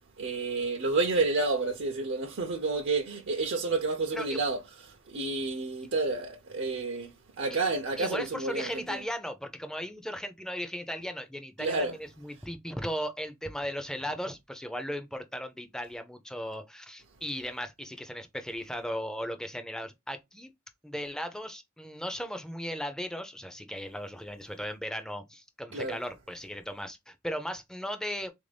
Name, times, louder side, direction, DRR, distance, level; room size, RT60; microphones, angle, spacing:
voice 1, 0.2-9.0 11.6-11.9 25.7-26.0, right 3 dB, 60° right, 0.6 m, -30 dB
voice 2, 8.0-20.5 20.8-28.3, equal, 5° left, 0.5 m, -37 dB
3.9 x 2.6 x 3.2 m
head